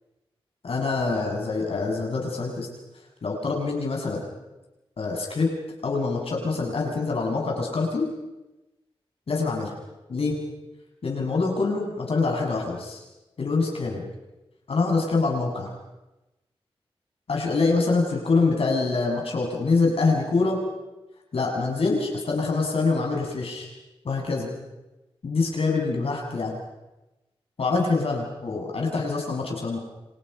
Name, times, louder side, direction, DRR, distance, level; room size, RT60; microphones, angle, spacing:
voice 1, 0.6-2.7 3.2-4.3 5.0-5.5 5.8-8.0 9.3-9.7 10.1-10.4 11.0-13.0 13.4-14.1 14.7-15.7 17.3-20.6 21.3-23.7 24.0-24.5 25.2-26.6 27.6-29.8, left 3 dB, 75° left, 0 dB, 7.7 m, -25 dB
30.0 x 28.5 x 5.8 m, 1.0 s
cardioid pair, 60°, 10 cm